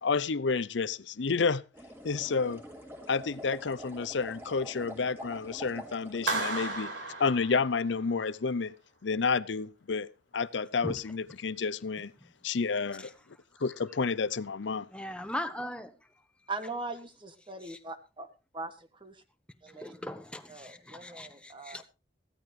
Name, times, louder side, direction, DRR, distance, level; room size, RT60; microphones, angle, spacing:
voice 1, 0.0-1.6 2.0-2.6 3.1-6.9 7.2-8.7 9.0-10.1 10.3-12.1 12.4-13.1 13.6-14.9, left 4 dB, 70° left, 0.6 m, -30 dB
sound 1, 1.7-6.7, equal, 10° right, 3.3 m, -46 dB
Clapping, 6.3-8.1, right 3 dB, 85° right, 4.4 m, -34 dB
voice 2, 14.9-15.9 17.7-17.8 19.7-21.8, left 1 dB, 5° left, 1.3 m, -39 dB
voice 3, 16.5-18.3 18.5-19.2 19.6-19.9 20.5-21.8, right 3 dB, 25° right, 1.3 m, -41 dB
16.0 x 13.5 x 3.2 m
head